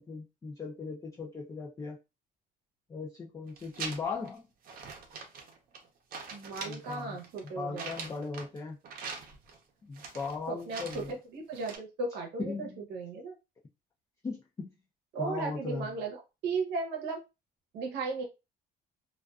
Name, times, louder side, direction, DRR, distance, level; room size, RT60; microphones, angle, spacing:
voice 1, 0.0-2.0 2.9-4.5 6.6-7.2 7.4-8.8 9.9-11.1 12.4-12.8 14.2-14.7 15.2-15.9, left 4 dB, 20° left, 0.4 m, -38 dB
sound 1, 3.5-4.3 4.6-5.9 6.1-8.6 8.8-9.6 9.9-11.2 11.5-11.8, right 5 dB, 55° right, 0.7 m, -43 dB
voice 2, 6.3-7.9 10.5-11.0 11.3-13.3 15.1-16.2 16.4-17.2 17.7-18.2, right 4 dB, 90° right, 0.8 m, -35 dB
2.3 x 2.3 x 2.3 m
cardioid pair, 110°, 17 cm